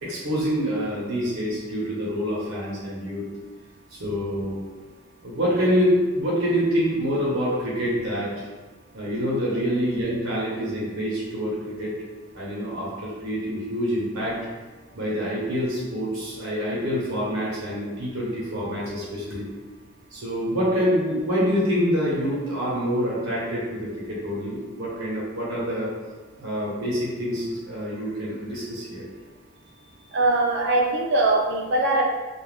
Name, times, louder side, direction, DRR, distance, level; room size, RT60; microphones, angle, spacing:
voice 1, 0.0-3.3 3.9-4.6 5.2-8.4 8.9-12.0 12.3-14.5 14.9-19.5 20.1-25.9 26.4-29.0, equal, 80° right, -7 dB, 0.9 m, -26 dB
voice 2, 30.1-32.0, right 2 dB, 55° right, 0 dB, 0.4 m, -21 dB
2.4 x 2.2 x 3.3 m, 1.3 s
head